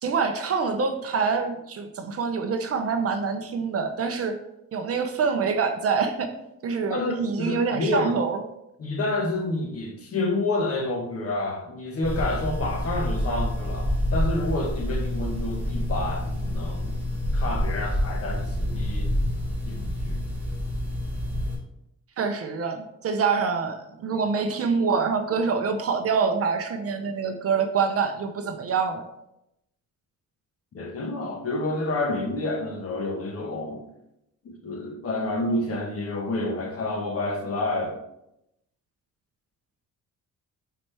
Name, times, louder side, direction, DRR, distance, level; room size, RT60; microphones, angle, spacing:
voice 1, 0.0-4.4 4.7-6.3 6.6-8.4 22.2-29.0, right 5 dB, 40° right, 6 dB, 0.7 m, -26 dB
voice 2, 6.9-8.2 8.8-17.0 17.3-19.1 19.7-20.2 30.7-33.8 34.4-38.0, left 2 dB, 40° left, 1 dB, 1.2 m, -29 dB
sound 1, 12.0-21.6, left 1 dB, 5° right, 2.4 m, -28 dB
10.0 x 4.3 x 3.3 m, 0.84 s
cardioid pair, 170°, 35 cm